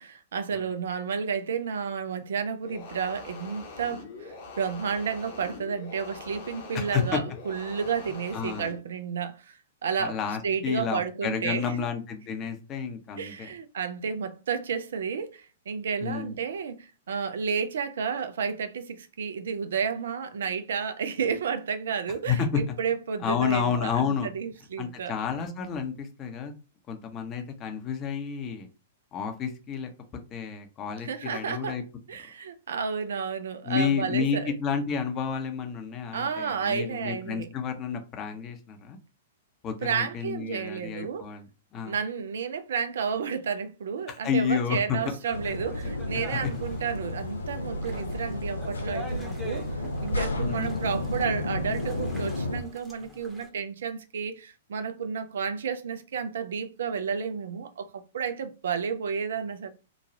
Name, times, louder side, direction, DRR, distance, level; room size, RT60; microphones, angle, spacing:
voice 1, 0.0-9.5 9.8-10.2 10.4-11.9 13.2-25.1 31.0-31.8 32.1-34.5 36.1-37.5 39.8-41.3 41.9-49.7 50.0-59.7, right 6 dB, 65° right, 0.4 m, -31 dB
sound 1, 2.6-8.8, left 4 dB, 50° left, 0.9 m, -43 dB
voice 2, 6.7-7.2 8.3-8.7 10.0-13.5 16.0-16.4 22.3-22.6 23.2-24.3 24.8-26.5 26.9-28.7 29.1-29.9 30.3-31.8 33.6-39.0 39.6-41.9 44.1-45.0 46.1-46.4 50.4-50.9, left 7 dB, 30° left, 0.7 m, -30 dB
sound 2, 45.0-53.5, right 1 dB, 10° right, 0.9 m, -45 dB
sound 3, 45.3-52.6, left 1 dB, 80° left, 0.4 m, -32 dB
3.0 x 2.3 x 2.6 m
figure-of-eight pair, 105°, 0 cm